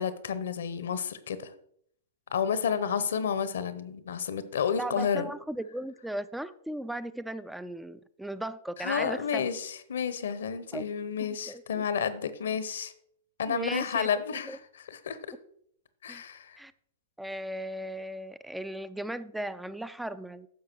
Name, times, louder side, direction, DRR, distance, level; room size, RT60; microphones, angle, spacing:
voice 1, 0.0-1.5 2.3-5.3 8.8-12.9 13.4-15.2 16.0-16.6, left 7 dB, 75° left, 14 dB, 0.9 m, -31 dB
voice 2, 4.8-9.5 10.7-10.9 11.2-11.8 13.5-14.1 14.5-14.6 16.1-16.2 16.6-16.7 17.2-20.5, right 1 dB, 5° right, 13 dB, 0.4 m, -37 dB
10.5 x 6.8 x 4.6 m, 0.68 s
hypercardioid pair, 110°, 0 cm